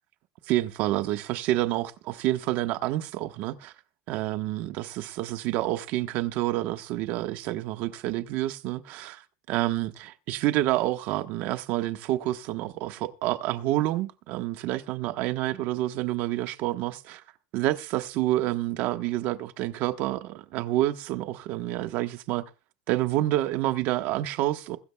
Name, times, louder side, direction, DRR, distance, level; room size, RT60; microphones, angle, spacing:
voice 1, 0.5-3.7 4.1-9.2 9.5-17.2 17.5-22.4 22.9-24.8, right 15 dB, 60° right, 1.2 m, -28 dB
22.0 x 12.5 x 2.3 m
supercardioid pair, 135°, 3 cm